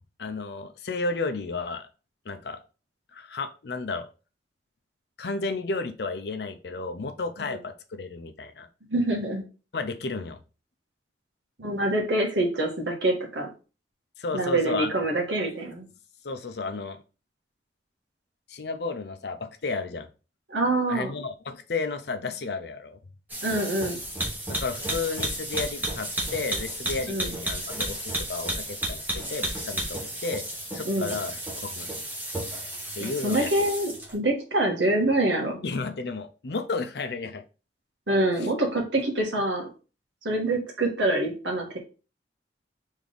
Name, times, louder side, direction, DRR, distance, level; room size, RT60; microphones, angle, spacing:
voice 1, 0.2-1.9 2.3-2.6 3.1-4.1 5.2-8.7 9.7-10.4 14.2-14.9 16.2-17.0 18.5-20.1 20.9-23.0 24.5-30.5 30.7-31.9 33.0-33.5 35.6-37.4 38.4-38.5, left 3 dB, 60° left, 8 dB, 0.6 m, -32 dB
voice 2, 8.9-9.4 11.6-13.5 14.3-15.8 20.5-21.1 23.4-24.0 27.1-27.3 30.8-31.1 33.0-35.6 38.1-39.6 40.2-41.8, right 1 dB, 90° right, 0 dB, 1.6 m, -25 dB
sound 1, 23.3-34.1, right 1 dB, 10° right, 1.1 m, -32 dB
3.6 x 3.4 x 3.9 m, 0.34 s
head